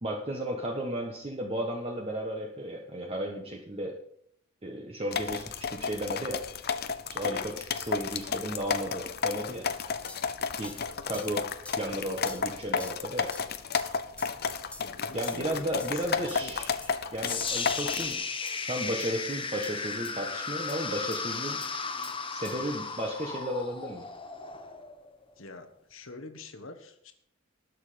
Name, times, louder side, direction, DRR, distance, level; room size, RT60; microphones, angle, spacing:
voice 1, 0.0-3.9 4.6-6.4 7.1-9.7 10.6-10.8 11.0-11.4 11.7-13.3 15.1-18.2 18.7-21.6 22.3-24.1, right 1 dB, 30° right, 0 dB, 1.3 m, -34 dB
sound 1, 5.1-18.1, left 6 dB, 50° left, 0.8 m, -32 dB
sound 2, 10.1-10.3 10.6-10.8 11.1-11.3 11.6-11.8 12.3-12.5 12.8-13.0 13.3-13.4 13.7-13.9 14.2-14.4 14.7-14.9 15.3-15.5 15.8-16.0 16.3-16.5 16.8-16.9 17.2-17.3 17.7-17.8 18.1-18.2 18.5-18.6 19.0-19.1 19.6-19.7 20.0-20.1 20.7-20.8 21.1-21.2 21.6-21.7 22.0-22.2 22.4-22.6, left 2 dB, 5° left, 0.9 m, -46 dB
voice 2, 14.8-16.5 25.4-27.1, left 3 dB, 70° left, 7 dB, 1.6 m, -46 dB
sound 3, 17.2-25.3, left 5 dB, 25° left, 1.2 m, -35 dB
19.5 x 6.6 x 5.1 m, 0.69 s
head